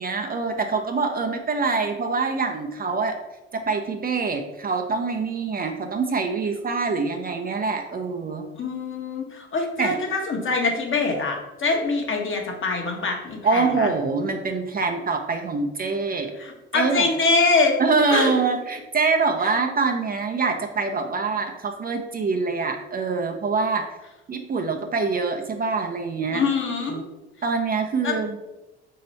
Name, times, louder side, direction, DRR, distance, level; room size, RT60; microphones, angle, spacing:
voice 1, 0.0-3.2 3.5-8.5 9.8-10.0 13.4-16.3 16.7-17.1 17.8-23.8 24.3-26.4 26.9-27.0 27.4-28.4, right 4 dB, 30° right, 4 dB, 0.5 m, -25 dB
voice 2, 8.5-13.9 16.4-17.8 18.1-18.4 19.5-19.6 26.3-27.0 28.0-28.1, left 3 dB, 40° left, 1 dB, 1.0 m, -24 dB
3.0 x 2.8 x 4.1 m, 1.0 s
hypercardioid pair, 60°, 30 cm